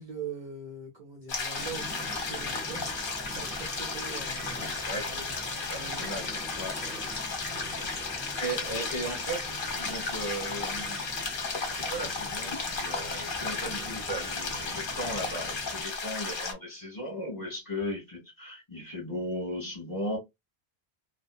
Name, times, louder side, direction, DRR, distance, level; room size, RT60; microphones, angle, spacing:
voice 1, 0.0-2.9 3.2-4.7 5.0-6.4 6.8-7.9, right 4 dB, 50° right, 0.7 m, -43 dB
sound 1, 1.3-16.5, left 3 dB, 60° left, 0.9 m, -34 dB
Chirp tweet, 1.6-15.8, equal, 5° right, 0.5 m, -45 dB
voice 2, 4.9-6.8 8.2-11.1 11.6-20.2, equal, 20° left, 1.7 m, -37 dB
2.7 x 2.1 x 2.4 m
omnidirectional pair, 1.1 m